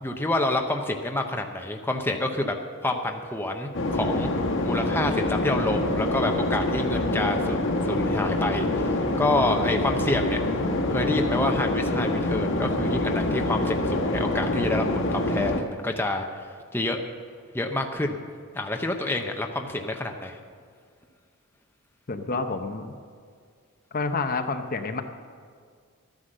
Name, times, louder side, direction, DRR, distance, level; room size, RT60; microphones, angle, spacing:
voice 1, 0.0-2.6 2.8-4.3 4.6-10.4 10.9-16.4 16.7-17.0 17.5-18.2 18.5-20.4, left 2 dB, 10° left, 3 dB, 0.7 m, -28 dB
sound 1, 2.1-4.1 6.1-8.1, right 3 dB, 45° right, 3.6 m, -46 dB
sound 2, 3.7-15.6, left 1 dB, 55° left, 1.4 m, -26 dB
voice 2, 22.1-22.9 23.9-25.0, left 3 dB, 40° left, 7 dB, 0.7 m, -29 dB
13.0 x 9.9 x 6.6 m, 2.1 s
head